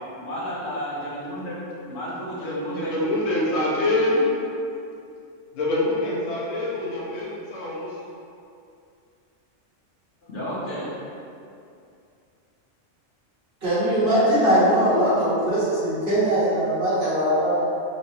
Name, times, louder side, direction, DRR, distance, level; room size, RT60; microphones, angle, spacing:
voice 1, 0.2-1.6 1.9-3.1 10.2-11.0, equal, 65° left, -9 dB, 1.5 m, -32 dB
voice 2, 2.4-4.2 5.5-8.0, left 1 dB, 80° left, -5 dB, 1.3 m, -25 dB
voice 3, 13.6-17.6, right 1 dB, 50° right, -10 dB, 1.5 m, -21 dB
5.9 x 3.1 x 2.7 m, 2.5 s
omnidirectional pair, 1.3 m